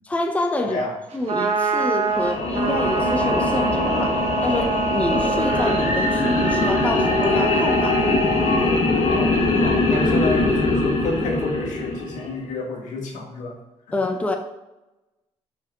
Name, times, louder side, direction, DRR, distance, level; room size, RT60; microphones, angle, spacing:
voice 1, 0.0-0.8 1.1-8.0 13.9-14.3, left 2 dB, 10° left, 4 dB, 0.6 m, -26 dB
voice 2, 0.6-0.9 9.0-13.5 13.9-14.0, left 2 dB, 80° left, 1 dB, 1.6 m, -30 dB
Trumpet, 1.1-8.7, right 4 dB, 55° right, 1.1 m, -25 dB
sound 1, 2.1-12.4, left 2 dB, 55° left, 1.6 m, -22 dB
5.9 x 4.4 x 4.8 m, 1.0 s
cardioid pair, 135°, 13 cm